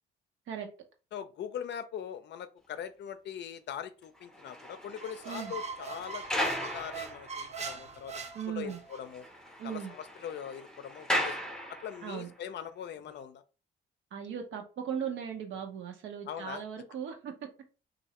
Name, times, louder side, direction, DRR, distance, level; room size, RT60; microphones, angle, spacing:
voice 1, 1.1-8.2 8.5-9.3 9.6-11.4 11.7-13.4 16.3-16.6, left 9 dB, 60° left, 0.5 m, -41 dB
sound 1, 4.1-7.9 8.2-8.3 8.6-8.7 9.0-12.3 13.0-13.1, left 1 dB, 5° left, 0.7 m, -37 dB
Squeak, 5.0-9.0, right 4 dB, 35° right, 0.5 m, -41 dB
voice 2, 8.3-8.8 9.6-9.9 12.0-12.3 14.1-17.5, right 8 dB, 75° right, 0.9 m, -38 dB
3.1 x 2.6 x 2.9 m
cardioid pair, 90°, 20 cm